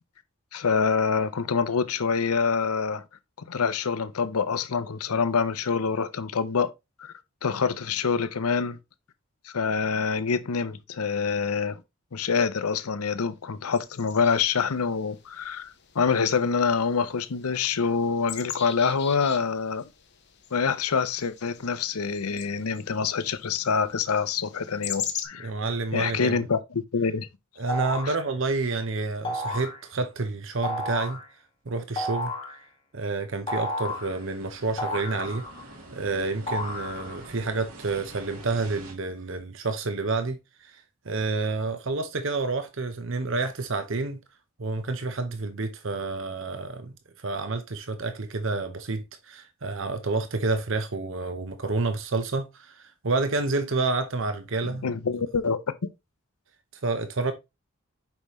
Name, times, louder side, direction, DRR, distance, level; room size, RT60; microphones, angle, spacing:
voice 1, 0.5-3.0 3.5-6.7 7.0-7.1 7.4-8.8 9.5-11.8 12.1-19.9 20.5-25.5 25.9-27.3 54.8-55.6, left 5 dB, 85° left, 0.6 m, -26 dB
sound 1, 13.7-25.2, left 10 dB, 50° left, 1.0 m, -41 dB
voice 2, 25.4-26.5 27.6-31.2 31.7-32.3 32.9-35.4 35.9-44.2 44.6-54.9 56.8-57.3, right 3 dB, 60° right, 0.8 m, -29 dB
sound 2, 27.7-28.2 29.2-29.8 30.6-31.2 32.0-32.6 33.5-34.2 34.8-35.7 36.5-37.3, left 1 dB, 25° left, 1.9 m, -32 dB
sound 3, 33.5-38.9, right 2 dB, 85° right, 2.7 m, -47 dB
7.0 x 5.4 x 3.1 m
head